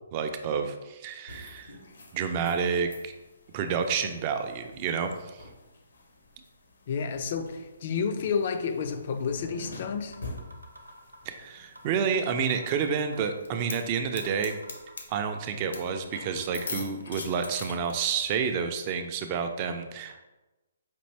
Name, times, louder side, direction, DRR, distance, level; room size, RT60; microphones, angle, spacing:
voice 1, 0.1-1.7 2.1-3.1 3.5-5.4 11.3-14.6 15.1-20.2, right 6 dB, 30° right, 6 dB, 0.4 m, -29 dB
sound 1, 1.3-17.9, left 3 dB, 65° left, 0.7 m, -45 dB
voice 2, 6.9-10.2, left 6 dB, 45° left, 7 dB, 0.4 m, -30 dB
sound 2, 9.8-9.9 10.1-11.3 11.8-11.9 12.1-13.3 13.8-13.9 14.1-15.3 15.8-15.9 16.1-17.2, right 1 dB, 90° right, 0.6 m, -49 dB
5.2 x 2.6 x 3.2 m, 1.1 s
figure-of-eight pair, 130°, 0 cm